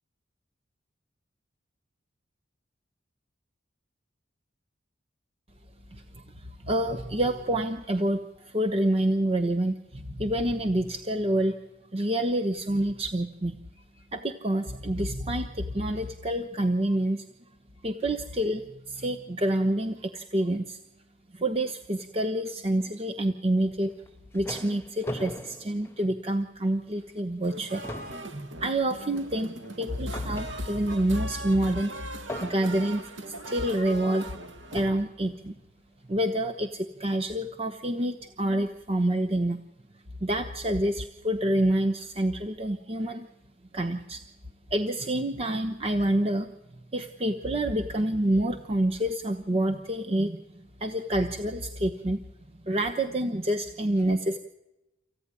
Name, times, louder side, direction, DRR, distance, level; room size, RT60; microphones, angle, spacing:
voice 1, 5.9-11.5 11.9-13.6 14.1-17.2 17.8-20.8 21.3-23.9 24.3-27.8 28.3-31.9 32.4-34.3 34.7-35.5 36.1-39.6 40.2-43.3 43.7-44.2 44.7-46.5 46.9-50.4 50.8-52.2 52.6-54.4, right 1 dB, 30° right, 5 dB, 0.9 m, -27 dB
sound 1, 23.9-26.6 27.0-27.2 27.5-31.0 32.3-33.0 33.9-34.0 34.7-35.2, left 1 dB, 10° left, 0.7 m, -41 dB
sound 2, 27.4-34.9, right 2 dB, 75° right, 1.3 m, -40 dB
25.0 x 15.5 x 9.8 m, 0.97 s
head